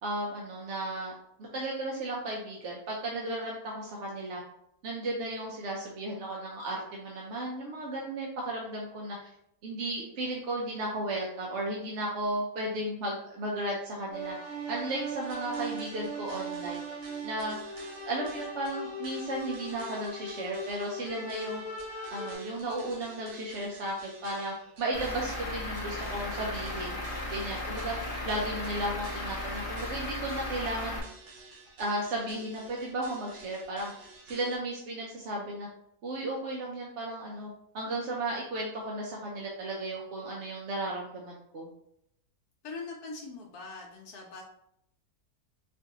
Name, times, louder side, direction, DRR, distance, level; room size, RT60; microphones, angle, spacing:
voice 1, 0.0-1.1 1.5-4.4 4.8-9.3 9.6-14.3 14.7-16.8 17.2-17.6 18.1-21.6 22.1-27.0 27.3-27.9 28.2-31.0 31.8-33.9 34.2-35.7 36.0-41.7, right 1 dB, 60° right, -2 dB, 0.8 m, -34 dB
sound 1, 14.1-22.4, right 1 dB, 35° right, 1.8 m, -39 dB
sound 2, 15.2-34.6, right 3 dB, 80° right, 1.4 m, -51 dB
voice 2, 16.0-16.3 42.6-44.4, left 3 dB, 80° left, -1 dB, 1.1 m, -42 dB
Truck / Idling, 24.9-31.0, left 1 dB, 30° left, 0.4 m, -36 dB
4.5 x 2.5 x 2.8 m, 0.74 s
omnidirectional pair, 1.6 m